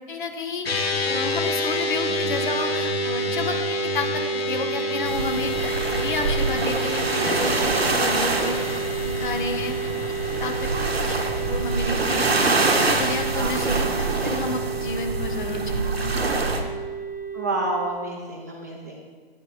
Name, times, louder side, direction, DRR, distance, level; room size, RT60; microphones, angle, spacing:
voice 1, 0.1-9.9 10.4-10.7 11.0-16.1, left 3 dB, 55° left, 6 dB, 0.8 m, -31 dB
sound 1, 0.6-17.9, right 1 dB, 85° left, 0.7 m, -29 dB
sound 2, 5.0-16.6, right 3 dB, 90° right, 0.8 m, -25 dB
voice 2, 17.3-19.0, right 2 dB, 20° right, -2 dB, 0.3 m, -29 dB
9.1 x 3.3 x 4.8 m, 1.5 s
figure-of-eight pair, 135°, 30 cm